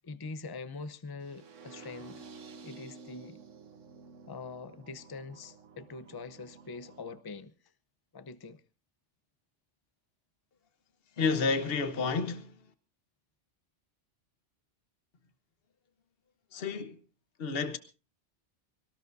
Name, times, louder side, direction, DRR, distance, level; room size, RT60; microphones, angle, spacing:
voice 1, 0.0-2.3 2.6-3.4 4.3-7.5 8.1-8.6, left 4 dB, 25° left, 0.7 m, -43 dB
sound 1, 1.2-7.2, right 5 dB, 85° right, 1.4 m, -51 dB
voice 2, 11.2-12.6 16.5-17.0 17.4-17.8, left 4 dB, 55° left, 1.3 m, -30 dB
23.5 x 18.5 x 2.6 m
omnidirectional pair, 1.2 m